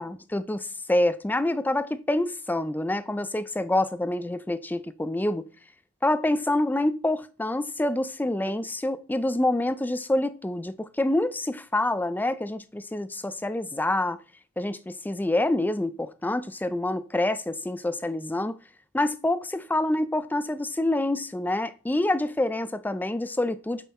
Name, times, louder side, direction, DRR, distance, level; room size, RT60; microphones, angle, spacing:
voice 1, 0.0-5.5 6.0-14.2 14.6-18.6 18.9-23.9, left 1 dB, 10° left, 0.4 m, -27 dB
7.4 x 6.9 x 4.2 m
head